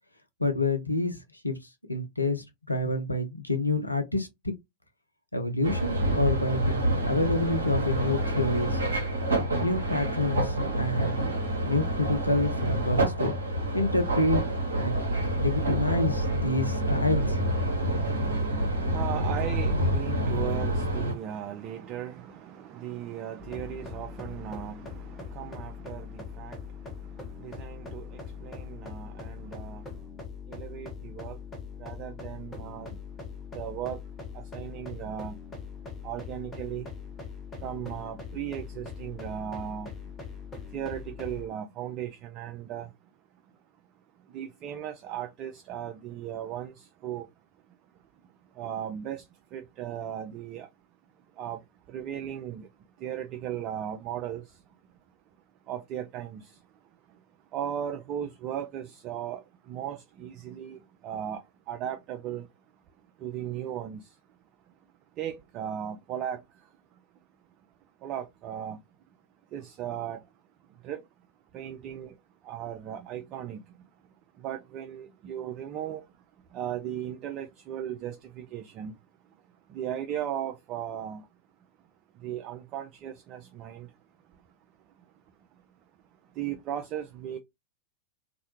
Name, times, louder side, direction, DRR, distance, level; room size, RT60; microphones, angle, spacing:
voice 1, 0.4-1.2 1.4-1.6 1.9-4.5 5.3-8.8 9.6-11.2 11.6-13.3 13.7-14.4 14.8-15.0 15.3-17.4, left 2 dB, 85° left, 0.5 m, -28 dB
sound 1, 5.6-21.1, right 1 dB, 70° right, 0.7 m, -27 dB
voice 2, 17.4-30.2 30.5-31.4 31.7-33.2 33.5-34.1 34.3-37.0 37.6-40.1 40.4-43.1 44.2-47.3 47.7-50.7 51.1-52.7 53.0-54.7 55.6-57.2 57.5-62.5 62.7-62.8 63.2-64.4 64.7-64.8 65.1-67.0 68.0-68.8 69.5-70.3 70.6-71.1 71.5-72.2 72.4-73.9 74.3-76.2 76.5-79.0 79.2-81.3 82.1-83.9 84.2-84.4 84.8-85.1 85.5-85.7 86.2-87.4, right 10 dB, 35° right, 0.3 m, -37 dB
sound 2, 23.4-41.5, left 6 dB, 20° left, 0.7 m, -41 dB
2.3 x 2.1 x 2.8 m
figure-of-eight pair, 90°, 0 cm